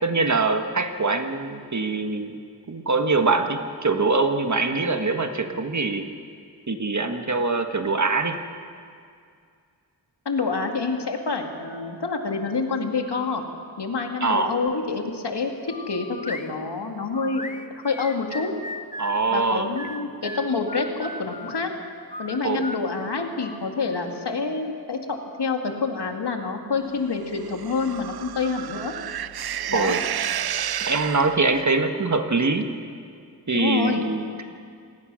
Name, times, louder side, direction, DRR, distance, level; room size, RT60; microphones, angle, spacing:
voice 1, 0.0-2.4 2.7-6.1 6.7-8.4 14.2-14.6 19.0-19.7 22.4-22.7 29.7-30.0 30.8-32.7 33.5-34.4, right 3 dB, 45° right, 5 dB, 1.5 m, -23 dB
voice 2, 10.3-13.4 13.8-15.5 15.9-17.4 17.8-18.5 19.3-21.7 22.2-28.9 29.7-30.0 33.5-34.0, left 4 dB, 75° left, 3 dB, 2.5 m, -27 dB
sound 1, 15.7-16.5 17.1-19.2 19.8-21.6 22.1-24.0, left 1 dB, 20° left, 1.0 m, -37 dB
sound 2, 27.4-31.7, right 10 dB, 65° right, 0.5 m, -31 dB
27.5 x 19.0 x 6.4 m, 2.2 s
wide cardioid pair, 95°, 40 cm